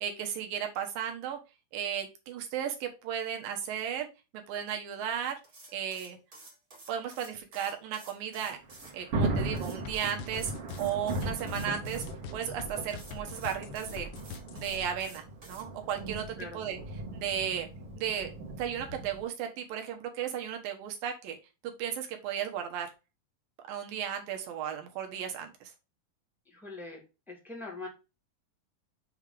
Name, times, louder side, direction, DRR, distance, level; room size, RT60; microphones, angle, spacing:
voice 1, 0.0-1.4 1.7-4.1 4.3-5.4 5.7-6.2 6.9-8.6 8.9-10.5 10.8-12.0 12.3-14.1 14.5-16.8 17.1-17.7 18.0-18.3 18.6-21.4 21.6-22.9 23.7-25.7, right 9 dB, 80° right, 4 dB, 3.0 m, -35 dB
sound 1, 5.4-8.9 9.5-12.1 12.9-15.7, right 2 dB, 25° right, 1.9 m, -52 dB
Thunder, 8.5-19.2, right 2 dB, 50° right, 2.0 m, -37 dB
sound 2, 9.9-14.9, left 6 dB, 75° left, 2.3 m, -43 dB
voice 2, 26.5-27.9, left 3 dB, ahead, -1 dB, 1.7 m, -43 dB
7.2 x 3.6 x 5.0 m, 0.28 s
omnidirectional pair, 4.1 m